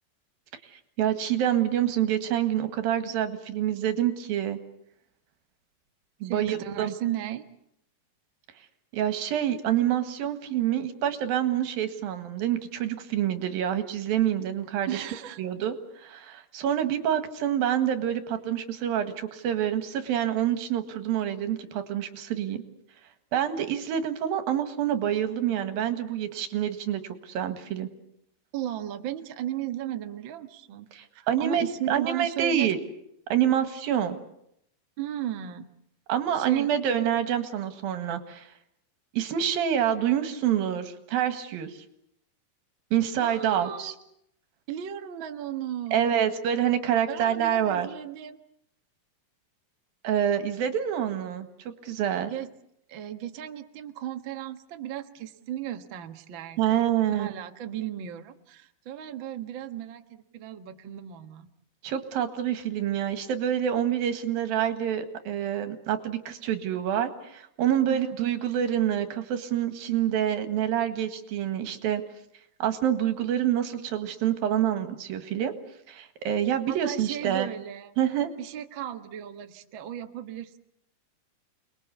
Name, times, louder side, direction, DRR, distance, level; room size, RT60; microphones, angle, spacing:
voice 1, 0.7-4.6 6.2-6.9 8.9-15.0 15.4-22.6 23.3-27.9 30.9-32.8 33.3-34.2 36.1-38.5 39.1-41.8 42.9-43.9 45.9-47.9 50.0-52.3 56.6-57.3 61.8-72.0 72.6-75.5 75.9-77.5 78.0-78.3, right 10 dB, 85° right, 9 dB, 3.6 m, -27 dB
voice 2, 6.2-7.4 14.9-15.4 28.5-32.7 35.0-35.7 36.3-36.7 43.2-44.0 44.7-46.1 47.1-48.4 52.3-52.5 52.9-56.8 57.1-61.5 67.8-68.1 76.7-77.9 78.4-80.6, right 11 dB, 55° right, 7 dB, 1.4 m, -35 dB
29.0 x 21.0 x 8.2 m, 0.76 s
omnidirectional pair, 4.1 m